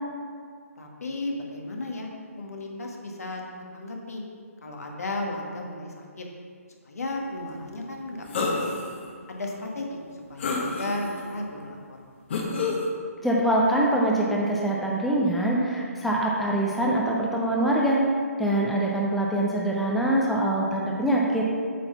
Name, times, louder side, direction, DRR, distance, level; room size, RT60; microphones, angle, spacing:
voice 1, 0.8-2.1 2.4-3.4 3.7-4.2 4.6-6.2 6.8-8.6 9.3-10.0 10.3-12.0, left 2 dB, 70° left, 0 dB, 1.4 m, -34 dB
sound 1, 8.3-8.9 9.5-9.6 10.4-11.2 12.3-12.9, left 3 dB, 45° left, 1.1 m, -28 dB
voice 2, 13.2-18.0 18.4-21.5, right 1 dB, ahead, -3 dB, 0.4 m, -24 dB
8.2 x 4.0 x 5.5 m, 2.1 s
figure-of-eight pair, 145°, 9 cm